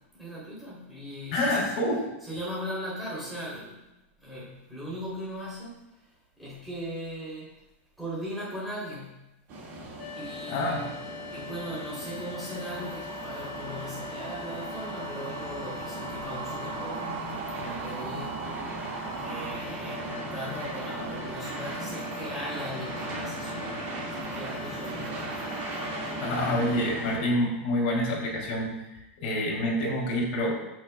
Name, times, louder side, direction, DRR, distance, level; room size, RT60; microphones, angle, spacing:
voice 1, 0.2-1.7 2.2-3.8 4.2-5.7 6.4-7.5 8.0-9.2 10.1-10.9 11.3-17.2 17.5-18.4 19.1-25.3, equal, ahead, -8 dB, 3.3 m, -38 dB
voice 2, 1.3-2.0 10.5-10.8 26.2-30.5, left 1 dB, 50° left, -1 dB, 3.3 m, -27 dB
sound 1, 9.5-27.2, right 2 dB, 40° right, 2.0 m, -38 dB
sound 2, 10.0-26.9, left 6 dB, 85° left, 1.1 m, -43 dB
sound 3, 12.7-19.6, right 5 dB, 80° right, 1.3 m, -40 dB
14.5 x 6.4 x 2.3 m, 0.93 s
supercardioid pair, 165°, 7 cm